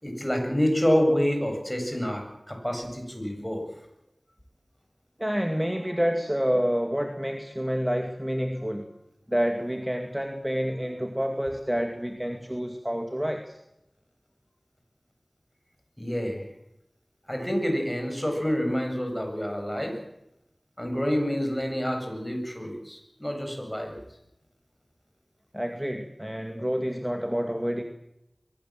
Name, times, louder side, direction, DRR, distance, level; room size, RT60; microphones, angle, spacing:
voice 1, 0.0-3.6 16.0-16.4 17.3-20.0 20.8-24.0, equal, 10° left, 3 dB, 7.7 m, -27 dB
voice 2, 5.2-8.9 9.3-13.6 25.5-27.8, equal, 10° right, 5 dB, 2.3 m, -28 dB
22.5 x 18.0 x 7.6 m, 0.85 s
wide cardioid pair, 45°, 0 cm